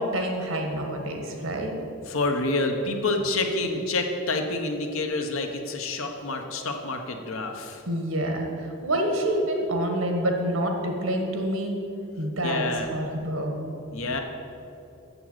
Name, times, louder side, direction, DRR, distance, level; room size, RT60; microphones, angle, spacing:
voice 1, 0.0-1.7 7.9-11.8 12.2-12.6 12.9-13.6, right 1 dB, 80° right, 3 dB, 1.5 m, -27 dB
voice 2, 2.1-7.8 12.4-12.9 13.9-14.2, left 2 dB, 75° left, 4 dB, 1.0 m, -28 dB
7.4 x 6.8 x 7.9 m, 2.8 s
head